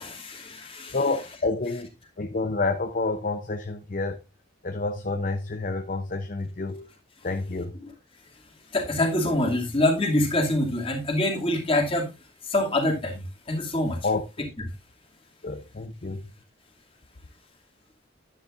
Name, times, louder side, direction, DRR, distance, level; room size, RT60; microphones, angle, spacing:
voice 1, 0.0-1.0 7.8-7.9 8.7-12.1 12.4-14.1 14.4-14.6, left 1 dB, 30° left, 2.6 m, -25 dB
voice 2, 0.9-1.9 2.2-4.2 4.6-6.9 7.2-7.7 14.0-14.3 15.4-16.2, left 3 dB, 45° left, 0.7 m, -28 dB
10.5 x 9.8 x 2.5 m
head